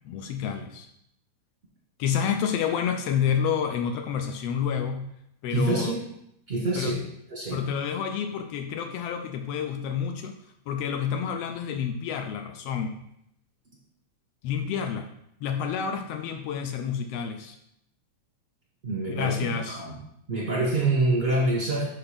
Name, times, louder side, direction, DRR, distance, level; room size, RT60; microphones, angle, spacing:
voice 1, 0.0-0.9 2.0-5.1 5.4-5.9 6.8-6.9 7.5-10.3 10.7-13.0 14.4-15.1 15.4-17.6 19.1-19.8, left 7 dB, 80° left, 6 dB, 1.4 m, -29 dB
voice 2, 5.5-6.0 6.5-7.0 7.3-7.6 18.8-20.0 20.3-21.9, right 2 dB, 40° right, -5 dB, 0.9 m, -26 dB
6.0 x 4.8 x 5.0 m, 0.75 s
omnidirectional pair, 3.3 m